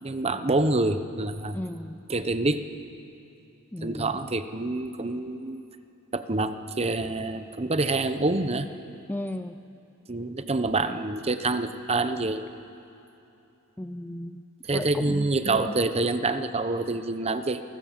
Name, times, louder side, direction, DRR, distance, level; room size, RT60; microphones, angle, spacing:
voice 1, 0.0-1.6 2.1-2.7 3.8-5.6 6.1-8.7 10.1-12.4 14.7-17.6, right 2 dB, 30° right, 10 dB, 0.9 m, -27 dB
voice 2, 1.5-2.0 3.7-4.1 9.1-9.5 13.8-14.4 14.7-15.7, left 1 dB, 10° left, 9 dB, 0.5 m, -35 dB
28.5 x 20.0 x 7.5 m, 2.9 s
head